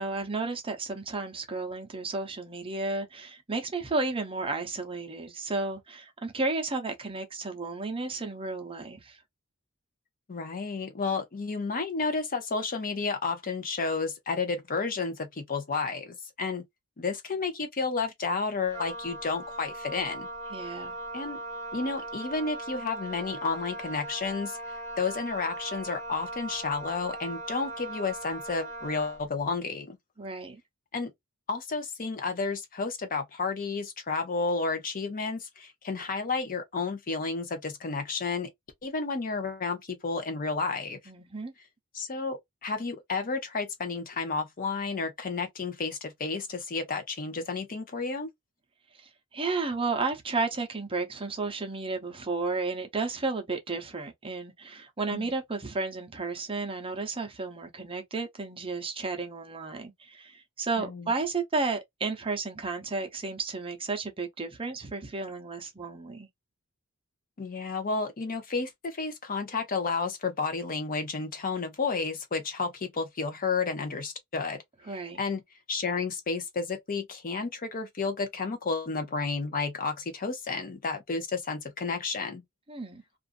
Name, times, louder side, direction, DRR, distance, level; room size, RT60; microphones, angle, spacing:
voice 1, 0.0-9.2 20.5-21.0 30.2-30.6 41.1-41.5 49.0-66.3 74.9-75.2 82.7-83.0, right 3 dB, 25° right, 0.7 m, -33 dB
voice 2, 10.3-16.6 17.0-20.3 21.1-21.4 21.7-24.6 25.0-30.0 30.9-31.1 31.5-38.5 38.8-41.0 41.9-48.3 55.1-55.3 60.8-61.1 67.4-74.6 75.2-75.4 75.7-82.4, left 4 dB, 40° left, 0.6 m, -31 dB
Wind instrument woodwind instrument, 18.7-29.3, right 2 dB, 10° left, 0.8 m, -39 dB
2.5 x 2.4 x 2.5 m
head